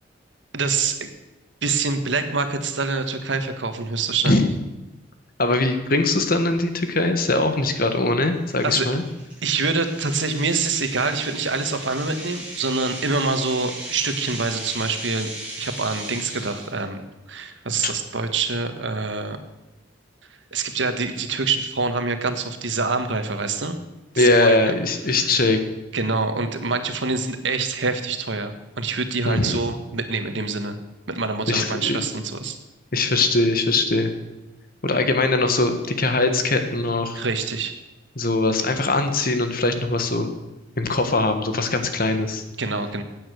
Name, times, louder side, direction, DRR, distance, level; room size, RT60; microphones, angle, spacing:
voice 1, 0.5-1.1 1.6-4.4 8.6-8.9 9.4-15.3 15.6-17.0 17.3-19.4 20.5-23.8 24.1-24.7 25.1-25.3 25.9-30.8 31.1-32.5 37.1-37.7 42.6-43.0, right 4 dB, 70° right, 7 dB, 1.5 m, -25 dB
voice 2, 5.4-9.0 17.8-17.9 24.2-25.6 29.3-29.6 31.5-32.0 32.9-34.1 34.8-37.2 38.2-40.3 40.8-42.4, left 2 dB, 50° left, 7 dB, 1.5 m, -21 dB
sound 1, 6.6-6.7 7.2-7.4 7.8-7.9 8.5-16.8, right 1 dB, 5° right, 6.3 m, -37 dB
16.5 x 8.8 x 6.4 m, 1.0 s
head